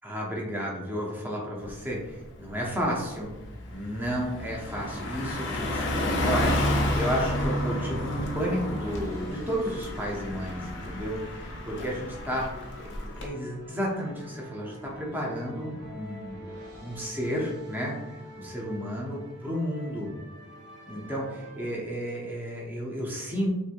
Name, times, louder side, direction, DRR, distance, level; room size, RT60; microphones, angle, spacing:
voice 1, 0.0-3.3 3.7-12.5 12.8-16.4 16.8-20.1 20.9-23.5, equal, 10° right, -3 dB, 0.7 m, -32 dB
Car passing by, 1.7-1.9 2.3-13.3, left 1 dB, 55° left, 0.6 m, -31 dB
sound 1, 4.9-21.8, left 1 dB, 50° right, 0.7 m, -46 dB
3.2 x 3.0 x 2.5 m, 1.0 s
head